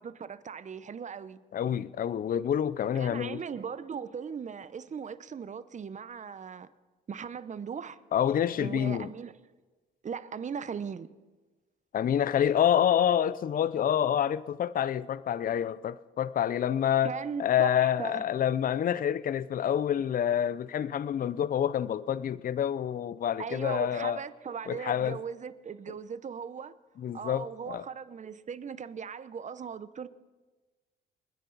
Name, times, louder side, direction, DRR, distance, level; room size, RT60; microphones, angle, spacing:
voice 1, 0.0-1.4 2.8-6.7 7.1-8.0 8.6-9.3 10.0-11.1 17.0-18.2 23.4-26.7 27.1-30.1, right 6 dB, 40° right, 0.8 m, -38 dB
voice 2, 1.5-3.4 8.1-9.1 11.9-17.1 17.4-24.2 24.7-25.2 27.0-27.8, left 9 dB, 45° left, 0.5 m, -27 dB
30.0 x 10.0 x 4.0 m
cardioid pair, 90°, 20 cm